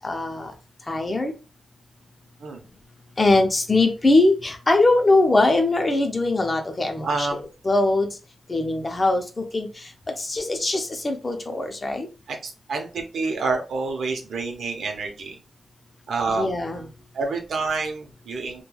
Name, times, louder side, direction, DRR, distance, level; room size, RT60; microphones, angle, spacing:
voice 1, 0.0-0.5 0.9-1.3 3.2-7.3 7.6-8.1 8.5-9.2 9.5-9.7 10.2-12.1 16.4-16.9, left 2 dB, 30° left, 4 dB, 0.5 m, -21 dB
voice 2, 7.0-7.5 12.3-15.3 16.1-16.6 17.1-18.6, right 3 dB, 85° right, 4 dB, 0.6 m, -28 dB
3.1 x 2.2 x 2.3 m, 0.32 s
wide cardioid pair, 105°, 0 cm